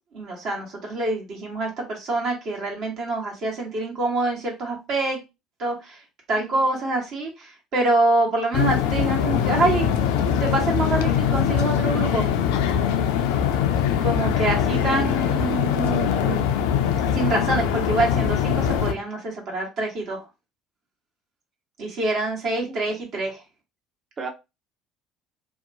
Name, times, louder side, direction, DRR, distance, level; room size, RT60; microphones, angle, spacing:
voice 1, 0.1-5.2 5.6-6.0 6.3-9.9 10.4-12.3 14.0-16.5 17.1-20.2 21.8-23.3, right 2 dB, 55° right, 0 dB, 1.2 m, -25 dB
voice 2, 6.3-6.7 14.8-15.1 22.7-23.0 24.2-24.3, right 4 dB, 35° right, 3 dB, 0.7 m, -38 dB
sound 1, 8.5-18.9, left 8 dB, 70° left, 0.3 m, -22 dB
2.7 x 2.2 x 2.6 m, 0.25 s
hypercardioid pair, 60°, 0 cm